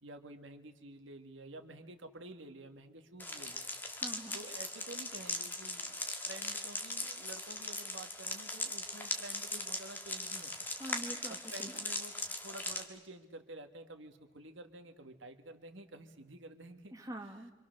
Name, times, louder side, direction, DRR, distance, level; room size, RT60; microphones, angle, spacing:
voice 1, 0.0-3.7 4.3-10.7 11.3-12.1 12.4-16.9, right 2 dB, 80° right, 6 dB, 1.7 m, -50 dB
sound 1, 3.2-12.8, left 2 dB, 10° left, 1.5 m, -40 dB
voice 2, 3.9-4.4 10.8-11.8 16.9-17.5, right 1 dB, 15° right, 3 dB, 1.4 m, -45 dB
26.5 x 25.5 x 6.5 m, 1.2 s
head